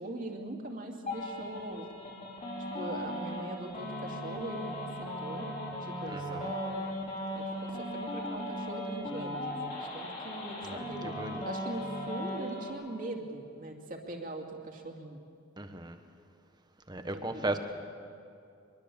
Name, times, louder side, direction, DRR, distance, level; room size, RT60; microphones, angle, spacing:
voice 1, 0.0-1.9 2.6-5.5 5.8-7.0 7.3-15.2 17.0-17.6, right 2 dB, 45° right, 2 dB, 2.6 m, -41 dB
sound 1, 1.1-12.7, left 1 dB, 40° left, 4.6 m, -38 dB
voice 2, 6.1-6.4 10.6-10.9 11.2-11.5 15.6-16.0 16.9-17.6, right 2 dB, 20° right, 7 dB, 1.3 m, -36 dB
23.5 x 22.0 x 7.0 m, 2.5 s
head